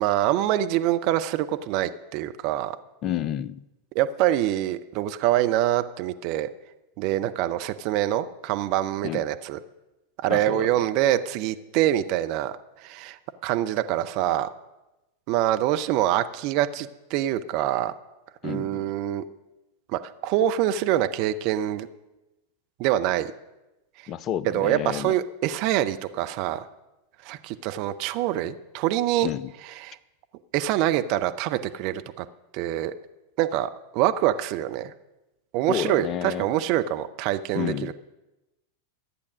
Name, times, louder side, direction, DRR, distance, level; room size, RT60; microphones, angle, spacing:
voice 1, 0.0-2.8 3.9-6.5 7.0-9.6 10.2-12.5 12.8-14.5 15.3-17.9 18.4-19.2 19.9-21.9 22.8-23.3 24.5-26.7 27.2-29.3 29.8-30.0 30.5-32.3 32.5-32.9 33.4-34.9 35.5-37.9, right 13 dB, 45° right, 9 dB, 0.6 m, -25 dB
voice 2, 3.0-3.6 9.0-9.2 10.3-10.7 18.4-18.9 24.1-25.1 29.2-29.5 35.7-36.5 37.5-37.9, left 10 dB, 30° left, 18 dB, 0.5 m, -30 dB
14.0 x 8.4 x 6.3 m, 1.0 s
figure-of-eight pair, 90°, 0 cm